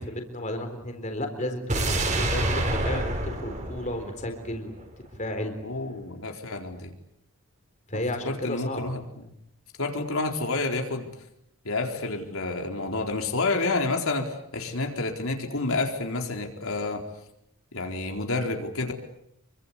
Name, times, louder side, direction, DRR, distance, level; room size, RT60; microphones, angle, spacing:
voice 1, 0.0-4.8 5.2-5.5 7.9-9.0, left 1 dB, 35° left, 5 dB, 4.0 m, -33 dB
sound 1, 1.7-4.8 5.1-5.2, right 1 dB, 35° right, 5.0 m, -28 dB
voice 2, 5.6-6.9 7.9-9.3 9.8-11.1 11.6-17.0 17.7-18.9, left 3 dB, 70° left, 3 dB, 4.3 m, -29 dB
27.5 x 24.5 x 8.5 m, 0.77 s
head